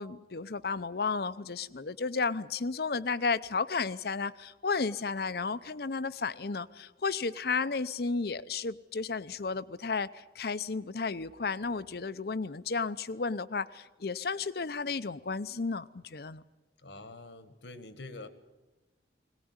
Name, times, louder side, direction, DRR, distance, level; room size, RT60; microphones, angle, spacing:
voice 1, 0.0-16.4, left 4 dB, 60° left, 16 dB, 0.7 m, -33 dB
voice 2, 16.8-18.3, left 2 dB, 80° left, 11 dB, 1.7 m, -46 dB
21.5 x 18.5 x 9.6 m, 1.1 s
head